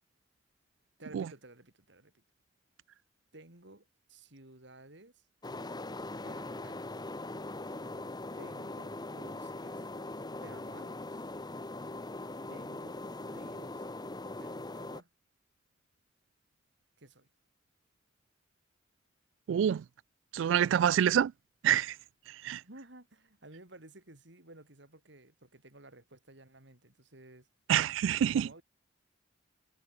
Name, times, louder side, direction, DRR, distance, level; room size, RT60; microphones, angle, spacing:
voice 1, 1.0-2.2 3.3-5.3 6.2-7.1 8.4-9.8 10.4-11.2 12.5-13.9 14.4-15.1 17.0-17.3 22.5-27.5 28.2-28.6, right 2 dB, 65° right, 4.2 m, -54 dB
sound 1, 5.4-15.0, left 2 dB, 20° left, 1.4 m, -41 dB
voice 2, 19.5-19.8 20.3-21.3 21.6-21.9 22.4-22.6 27.7-28.5, right 9 dB, 85° right, 0.3 m, -26 dB
head